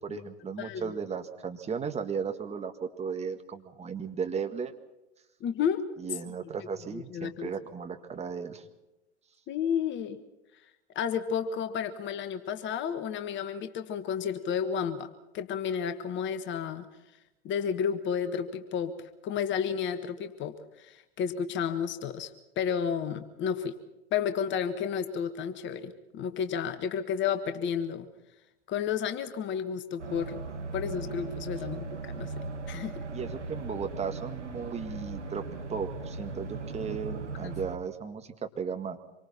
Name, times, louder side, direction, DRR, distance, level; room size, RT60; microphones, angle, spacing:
voice 1, 0.0-4.7 6.0-8.6 33.1-39.0, right 6 dB, 20° right, 7 dB, 1.8 m, -35 dB
voice 2, 0.6-0.9 5.4-5.9 6.6-7.5 9.5-10.2 10.9-16.8 17.4-19.0 19.2-23.8 24.1-28.1 28.7-30.4 30.7-32.3 32.7-33.0 37.4-37.5, left 7 dB, 35° left, 9 dB, 1.5 m, -32 dB
sound 1, 30.0-37.8, right 4 dB, 85° right, 1.9 m, -38 dB
26.5 x 23.5 x 4.4 m, 0.96 s
hypercardioid pair, 100°, 35 cm